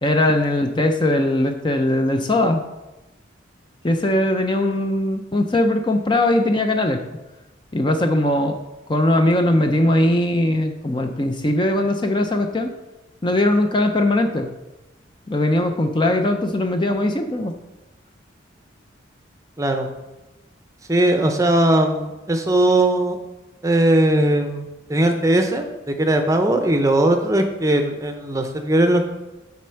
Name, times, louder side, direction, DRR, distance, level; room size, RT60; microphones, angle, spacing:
voice 1, 0.0-2.6 3.8-7.0 7.7-8.6 8.9-12.7 13.2-14.5 15.3-17.5, left 1 dB, 25° left, 5 dB, 0.5 m, -20 dB
voice 2, 19.6-19.9 20.9-23.2 23.6-29.0, right 1 dB, 15° right, 5 dB, 0.6 m, -19 dB
9.5 x 4.3 x 5.7 m, 1.0 s
head